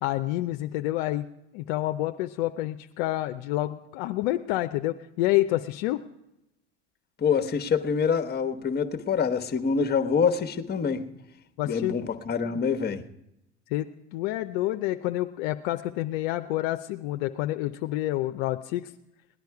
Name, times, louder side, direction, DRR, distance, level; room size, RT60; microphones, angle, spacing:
voice 1, 0.0-1.3 1.5-6.0 11.6-12.1 12.5-12.6 13.7-18.9, left 16 dB, 65° left, 7 dB, 0.6 m, -28 dB
voice 2, 7.2-11.1 11.6-13.0, left 6 dB, 25° left, 9 dB, 1.1 m, -26 dB
18.0 x 10.5 x 4.7 m, 0.87 s
hypercardioid pair, 85°, 36 cm